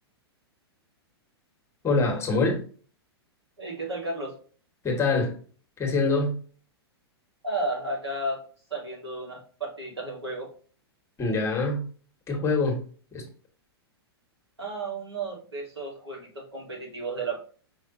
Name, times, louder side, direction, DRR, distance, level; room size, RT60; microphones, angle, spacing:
voice 1, 1.8-2.6 4.8-5.4 5.8-6.4 11.2-11.9 12.3-12.8 13.1-13.3, left 3 dB, 20° left, 1.4 m, -24 dB
voice 2, 3.6-4.3 7.4-8.4 8.7-10.5 14.6-17.4, right 2 dB, 85° right, 2.3 m, -33 dB
5.5 x 3.1 x 2.7 m
figure-of-eight pair, 105°, 14 cm